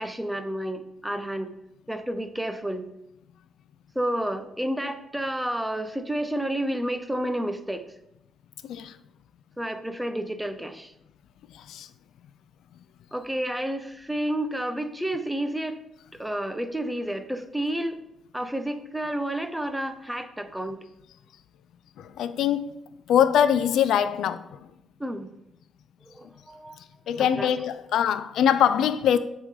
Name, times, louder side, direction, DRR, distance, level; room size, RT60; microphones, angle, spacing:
voice 1, 0.0-1.5 1.9-2.8 3.9-7.9 9.6-10.9 13.1-15.8 16.2-18.0 18.3-20.8 25.0-25.3 26.1-26.8 27.2-27.5, right 1 dB, 5° right, 0.7 m, -30 dB
voice 2, 11.5-11.9 22.0-22.8 23.1-24.6 27.1-29.2, left 9 dB, 75° left, 0.4 m, -23 dB
7.1 x 3.7 x 5.0 m
cardioid pair, 90°, 0 cm